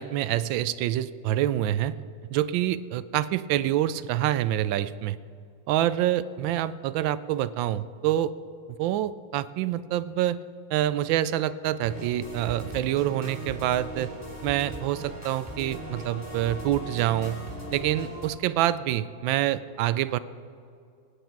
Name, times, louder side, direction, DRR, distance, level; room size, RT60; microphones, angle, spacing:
voice 1, 0.0-2.0 2.3-5.2 5.7-8.3 8.8-10.4 10.7-14.1 14.4-17.4 17.7-20.2, right 12 dB, 85° right, 16 dB, 1.3 m, -26 dB
sound 1, 11.8-18.3, equal, 5° left, 3.3 m, -38 dB
23.0 x 9.7 x 4.6 m, 2.4 s
omnidirectional pair, 2.1 m